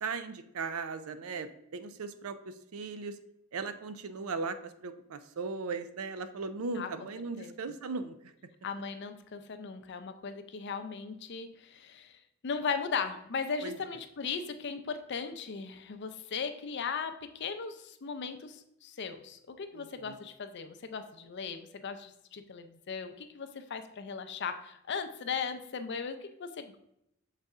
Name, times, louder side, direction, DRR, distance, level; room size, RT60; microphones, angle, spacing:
voice 1, 0.0-3.2 3.5-8.2 13.6-13.8 19.7-20.2, right 4 dB, 85° right, 11 dB, 0.5 m, -38 dB
voice 2, 8.6-12.1 12.4-26.8, left 5 dB, 55° left, 8 dB, 0.5 m, -37 dB
6.6 x 4.1 x 3.5 m, 0.79 s
head